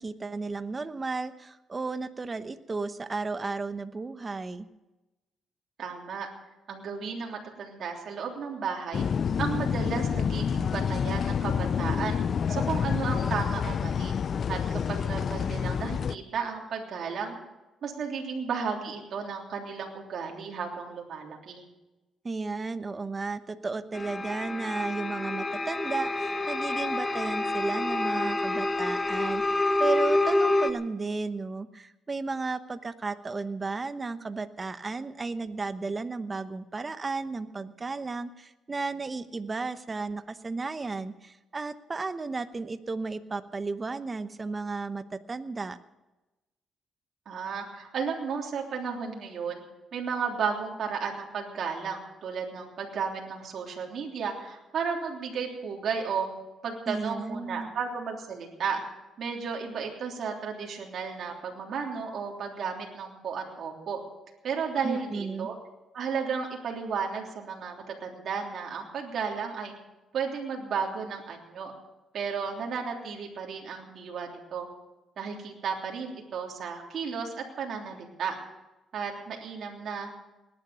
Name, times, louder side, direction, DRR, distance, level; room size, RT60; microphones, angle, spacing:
voice 1, 0.0-4.7 22.2-45.8 56.9-57.7 64.8-65.5, right 3 dB, 30° right, 12 dB, 1.0 m, -34 dB
voice 2, 5.8-6.3 6.7-9.0 9.4-12.2 12.5-14.1 14.5-17.4 17.8-21.6 47.2-49.6 49.9-56.3 56.6-58.8 59.2-64.0 64.4-65.5 65.9-69.7 70.1-71.7 72.1-74.7 75.2-78.4 78.9-80.1, right 6 dB, 60° right, 0 dB, 3.3 m, -33 dB
sound 1, 8.9-16.2, left 7 dB, 50° left, 0.5 m, -28 dB
sound 2, 23.9-30.7, left 2 dB, 20° left, 1.3 m, -28 dB
19.0 x 11.0 x 6.9 m, 1.0 s
cardioid pair, 90°, 0 cm